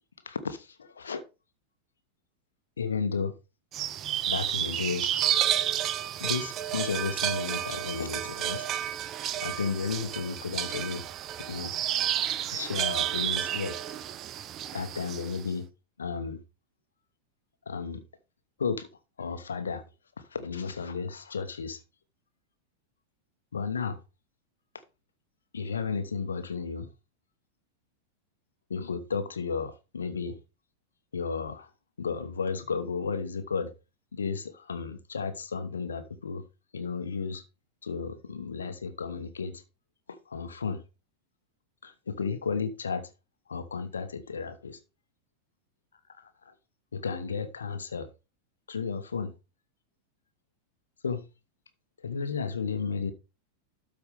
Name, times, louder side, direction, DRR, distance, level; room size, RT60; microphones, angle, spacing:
voice 1, 0.2-1.2 2.8-3.4 4.3-5.1 6.2-8.7 9.4-11.0 11.5-11.7 12.5-13.8 14.7-15.7 16.0-16.4 17.7-18.0 18.6-18.9 19.2-19.8 20.2-21.8 23.5-24.0 25.5-26.9 28.7-30.4 31.1-31.7 32.0-33.7 34.1-36.4 36.7-37.4 37.8-39.6 40.1-40.8 41.8-43.1 43.5-44.8 46.2-46.5 46.9-48.1 48.7-49.3 51.0-51.2 52.0-53.1, left 5 dB, 70° left, 1.0 m, -33 dB
sound 1, 3.7-15.4, right 11 dB, 30° right, 0.6 m, -31 dB
12.5 x 4.7 x 3.4 m
figure-of-eight pair, 90°, 0 cm